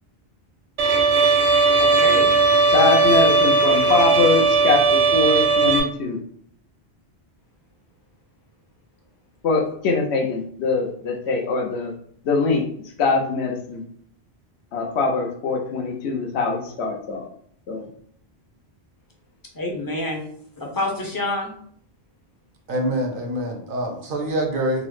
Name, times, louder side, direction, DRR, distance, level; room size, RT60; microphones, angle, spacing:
Bowed string instrument, 0.8-5.8, right 4 dB, 90° right, 0.9 m, -17 dB
voice 1, 1.8-2.3 19.5-20.3 20.6-21.5, left 2 dB, 25° left, -1 dB, 0.5 m, -27 dB
voice 2, 2.7-6.2 9.4-11.9 12.2-12.6 13.0-13.8 14.7-17.2 17.7-17.8, left 4 dB, 85° left, 2 dB, 0.9 m, -22 dB
voice 3, 22.7-24.9, right 1 dB, 60° right, 3 dB, 0.7 m, -25 dB
3.7 x 2.0 x 3.1 m, 0.63 s
omnidirectional pair, 1.1 m